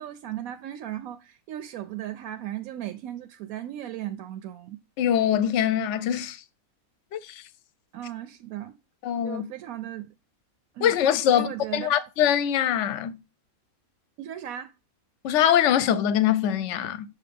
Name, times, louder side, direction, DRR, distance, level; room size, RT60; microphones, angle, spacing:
voice 1, 0.0-4.8 7.9-8.8 9.2-10.1 10.7-11.0 11.3-12.0 14.2-14.7, right 12 dB, 80° right, 1.0 m, -36 dB
voice 2, 5.0-6.4 7.1-7.4 9.0-9.4 10.8-13.2 15.2-17.0, left 10 dB, 65° left, 0.9 m, -23 dB
6.8 x 2.9 x 5.1 m
omnidirectional pair, 1.5 m